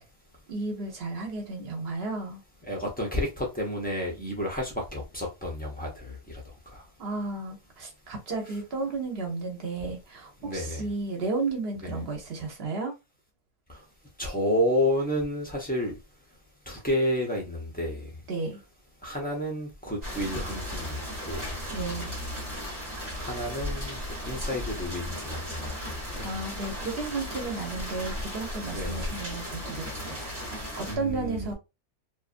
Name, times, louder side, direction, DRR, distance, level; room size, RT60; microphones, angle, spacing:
voice 1, 0.5-2.4 7.0-12.9 18.3-18.6 21.7-22.1 26.2-30.3 30.8-31.5, right 3 dB, 50° right, 1.0 m, -33 dB
voice 2, 2.7-6.2 10.4-10.8 11.8-11.9 14.2-15.9 16.7-18.0 19.0-21.4 23.2-24.0 24.3-25.7 26.1-26.3 28.7-29.2 30.9-31.5, left 1 dB, 10° left, 0.7 m, -30 dB
sound 1, 20.0-31.0, left 1 dB, 25° right, 1.0 m, -36 dB
2.8 x 2.5 x 2.5 m
omnidirectional pair, 1.5 m